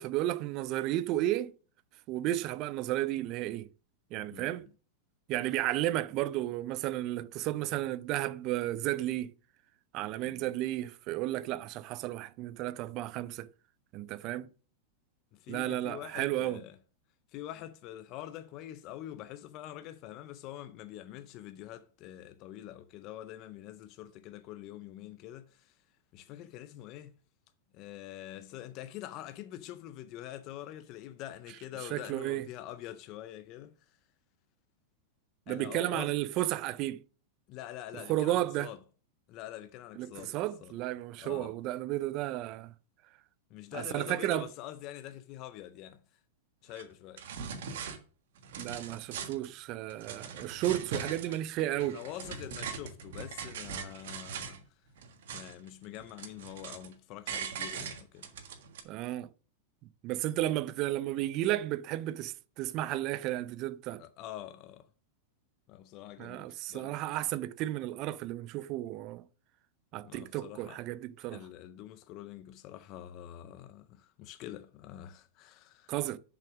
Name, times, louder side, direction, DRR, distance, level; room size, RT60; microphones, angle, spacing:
voice 1, 0.0-1.5 2.1-3.7 4.1-4.7 5.3-9.3 9.9-13.5 13.9-14.5 15.5-16.6 31.9-32.4 35.5-37.0 38.1-38.7 40.0-42.7 43.7-44.5 48.6-52.0 58.8-59.3 60.0-64.0 66.2-69.2 69.9-71.4 75.9-76.2, right 15 dB, 25° right, 0.4 m, -33 dB
voice 2, 4.3-4.6 10.3-10.4 15.4-16.8 17.3-25.7 26.1-27.1 27.7-33.7 35.5-36.1 37.5-38.8 39.3-40.7 41.2-41.5 43.5-46.0 46.6-47.2 50.9-51.4 51.8-54.6 55.3-58.3 64.0-64.9 65.7-67.0 70.0-70.8 71.3-75.9, left 13 dB, 30° left, 0.5 m, -45 dB
sound 1, 46.7-46.8 47.2-48.0 48.4-49.5 49.9-51.4 51.8-54.6 55.0-55.7 55.9-56.9 57.3-58.8, right 6 dB, 60° right, 1.5 m, -41 dB
7.1 x 5.7 x 6.1 m
supercardioid pair, 180°, 0 cm